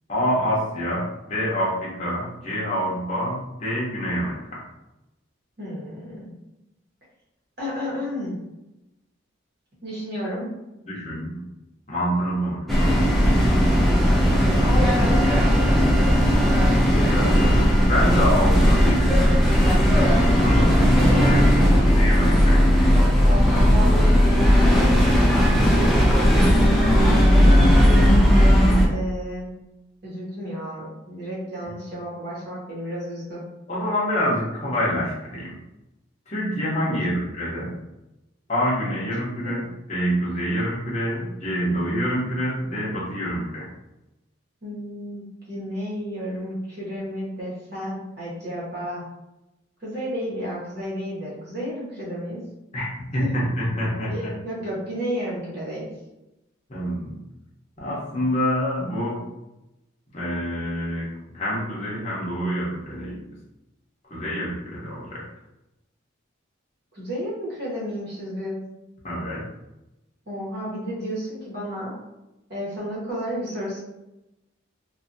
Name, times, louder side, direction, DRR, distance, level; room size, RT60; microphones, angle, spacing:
voice 1, 0.1-4.6 10.9-11.4 11.9-13.0 17.1-20.9 21.2-21.4 21.9-22.9 33.7-35.6 36.3-37.7 38.5-39.6 39.9-43.7 52.7-52.9 53.1-54.3 56.7-57.2 57.8-59.2 60.1-61.1 61.3-63.2 64.1-65.2 69.0-69.4, equal, 35° left, -6 dB, 0.8 m, -27 dB
voice 2, 5.6-6.3 7.6-8.4 9.8-10.5 14.2-15.9 20.9-22.0 23.2-26.0 26.5-29.5 30.0-33.4 36.9-37.2 39.4-39.6 40.5-40.7 44.6-49.0 49.8-52.4 53.2-53.4 54.1-55.9 66.9-68.6 70.3-71.9 72.5-73.8, equal, 50° right, -7 dB, 1.2 m, -32 dB
sound 1, 12.7-28.9, equal, ahead, 0.4 m, -17 dB
2.7 x 2.6 x 2.6 m, 0.95 s
head